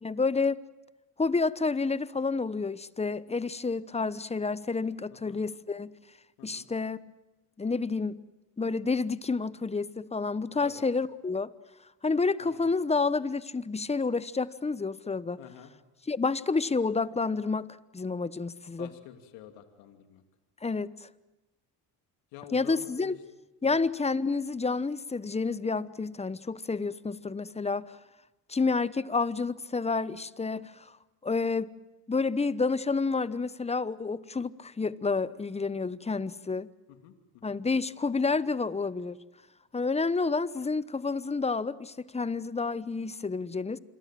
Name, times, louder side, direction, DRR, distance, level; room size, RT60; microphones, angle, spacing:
voice 1, 0.0-0.6 1.2-5.9 6.4-7.0 7.6-8.2 8.6-11.5 12.0-15.4 16.1-18.9 20.6-21.1 22.5-23.2 23.6-28.0 28.5-30.9 31.2-31.7 32.1-36.7 37.4-39.2 39.7-43.8, left 4 dB, 15° left, 0.9 m, -29 dB
voice 2, 5.1-5.4 6.4-6.7 10.6-10.8 12.5-12.7 15.4-15.7 18.8-20.2 22.3-23.2 23.6-23.8 36.9-37.6, left 10 dB, 85° left, 2.7 m, -49 dB
27.0 x 23.0 x 7.6 m
supercardioid pair, 90°, 43 cm